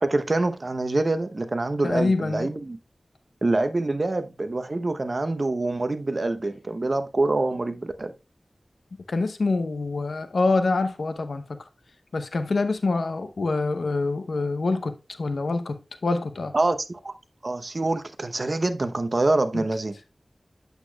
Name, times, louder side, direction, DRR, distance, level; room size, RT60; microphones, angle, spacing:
voice 1, 0.0-2.8 3.4-8.1 16.5-17.1 17.4-19.9, right 2 dB, 55° right, 0.8 m, -25 dB
voice 2, 1.8-2.5 9.1-11.6 12.1-16.5 19.5-19.6, left 3 dB, 85° left, 0.7 m, -26 dB
8.3 x 8.0 x 2.3 m
wide cardioid pair, 45°, 0 cm